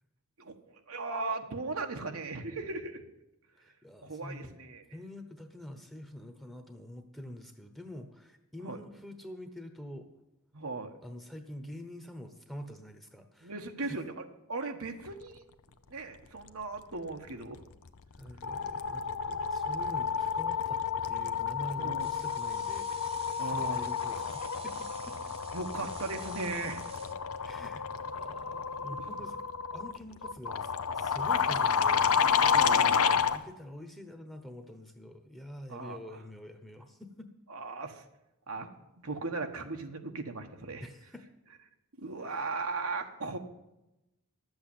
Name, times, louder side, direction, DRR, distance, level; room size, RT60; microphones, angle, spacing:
voice 1, 0.9-3.0 4.0-4.8 8.6-8.8 10.5-10.9 13.4-14.2 14.5-15.4 15.9-17.6 21.8-22.1 23.4-23.8 25.5-26.8 29.0-29.1 32.5-33.2 35.7-36.0 37.5-38.0 38.5-38.7 39.0-40.9 42.0-43.4, right 3 dB, 75° right, 5 dB, 1.3 m, -37 dB
voice 2, 3.6-4.6 4.9-10.1 11.0-13.5 13.8-14.0 18.2-25.2 27.4-29.4 29.7-32.1 33.1-37.3 40.8-41.3 42.2-42.6, left 1 dB, ahead, 7 dB, 1.0 m, -46 dB
sound 1, 17.6-17.9 18.1-33.4, left 6 dB, 80° left, 0.7 m, -30 dB
sound 2, 22.0-27.1, right 6 dB, 25° right, 0.9 m, -51 dB
12.0 x 8.0 x 8.8 m, 0.94 s
head